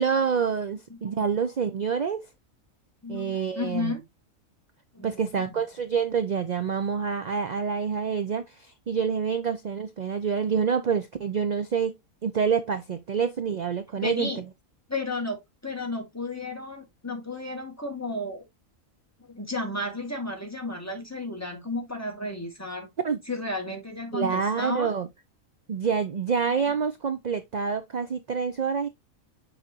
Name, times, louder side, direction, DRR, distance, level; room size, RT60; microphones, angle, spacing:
voice 1, 0.0-2.2 3.1-4.0 5.0-11.9 12.2-14.4 23.0-23.2 24.1-25.1 25.7-28.9, right 6 dB, 50° right, 0.5 m, -27 dB
voice 2, 3.0-4.0 4.9-5.2 14.0-14.4 14.9-18.4 19.3-22.9 23.3-24.9, left 2 dB, 10° left, 1.9 m, -33 dB
7.0 x 5.0 x 2.8 m
omnidirectional pair, 1.4 m